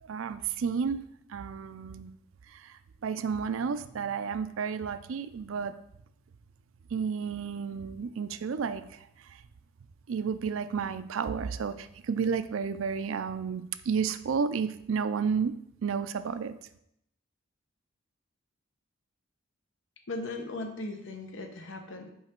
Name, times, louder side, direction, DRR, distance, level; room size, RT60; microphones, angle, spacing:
voice 1, 0.0-1.0 1.3-2.1 2.5-5.7 6.9-9.1 10.1-15.5 15.8-16.5, right 6 dB, 75° right, 12 dB, 0.4 m, -31 dB
voice 2, 20.1-22.1, left 2 dB, 65° left, 5 dB, 0.9 m, -38 dB
5.6 x 4.9 x 4.4 m, 0.76 s
head